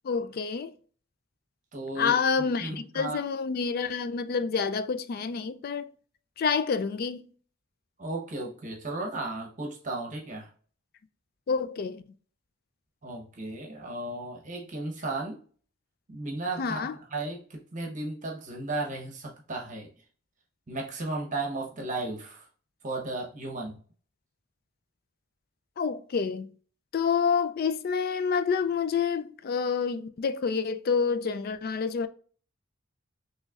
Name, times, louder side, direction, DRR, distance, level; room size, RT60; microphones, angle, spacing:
voice 1, 0.0-0.7 2.0-5.9 6.4-7.3 11.5-12.0 16.6-17.0 25.8-26.5 26.9-32.1, left 5 dB, 50° left, 0.3 m, -28 dB
voice 2, 1.7-3.2 8.0-10.5 13.0-15.4 16.1-19.9 20.7-22.5 22.8-23.8, right 2 dB, 40° right, 1.0 m, -35 dB
6.2 x 3.1 x 2.4 m
head